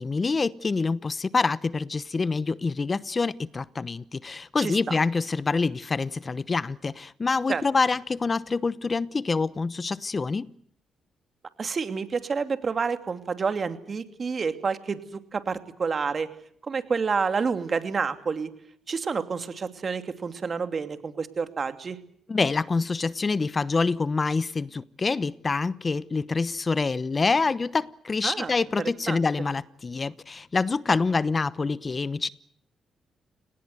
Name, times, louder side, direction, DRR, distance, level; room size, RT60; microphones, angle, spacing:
voice 1, 0.0-10.5 22.3-32.3, left 4 dB, 35° left, 0.9 m, -26 dB
voice 2, 11.6-15.0 15.3-16.3 16.7-18.5 18.9-22.0 28.2-29.2, right 5 dB, 45° right, 2.7 m, -29 dB
29.0 x 19.0 x 8.0 m
supercardioid pair, 60°, 0 cm